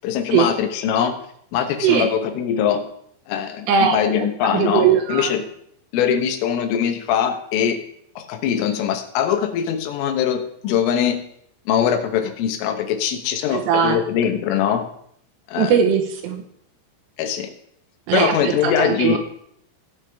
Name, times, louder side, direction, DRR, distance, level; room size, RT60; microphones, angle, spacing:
voice 1, 0.0-1.1 1.5-2.8 3.3-5.4 5.9-7.8 8.2-11.2 11.7-14.9 15.5-15.8 17.2-17.5 18.1-19.2, left 8 dB, 85° left, 7 dB, 3.6 m, -22 dB
voice 2, 3.7-5.3 13.5-14.0 15.6-16.4 18.1-19.2, right 7 dB, 75° right, 3 dB, 2.9 m, -20 dB
18.0 x 7.0 x 3.4 m, 0.70 s
omnidirectional pair, 5.6 m